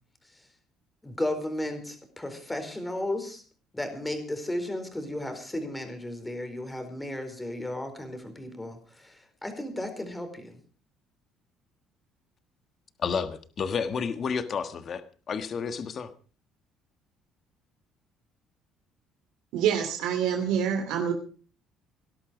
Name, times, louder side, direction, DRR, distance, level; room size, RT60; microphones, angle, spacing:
voice 1, 1.0-3.4 3.7-10.6, left 1 dB, 10° left, 7 dB, 4.3 m, -34 dB
voice 2, 13.0-16.1, left 6 dB, 45° left, 10 dB, 1.5 m, -31 dB
voice 3, 19.5-21.1, right 8 dB, 85° right, 4 dB, 2.9 m, -26 dB
19.0 x 11.5 x 5.1 m, 0.39 s
cardioid pair, 105°, 0 cm